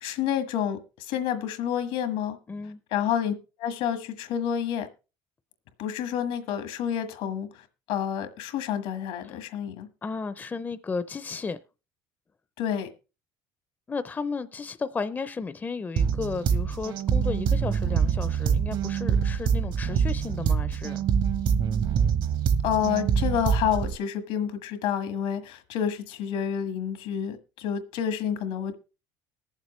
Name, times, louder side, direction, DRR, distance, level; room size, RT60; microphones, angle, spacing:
voice 1, 0.0-2.4 2.9-3.3 3.6-4.9 5.8-9.9 12.6-12.9 22.6-28.7, left 9 dB, 80° left, 1.5 m, -29 dB
voice 2, 2.5-2.8 9.2-9.3 10.0-11.6 13.9-21.0, left 4 dB, 20° left, 0.5 m, -33 dB
sound 1, 16.0-24.0, right 7 dB, 55° right, 0.9 m, -25 dB
20.5 x 7.3 x 3.1 m
cardioid pair, 115°, 10 cm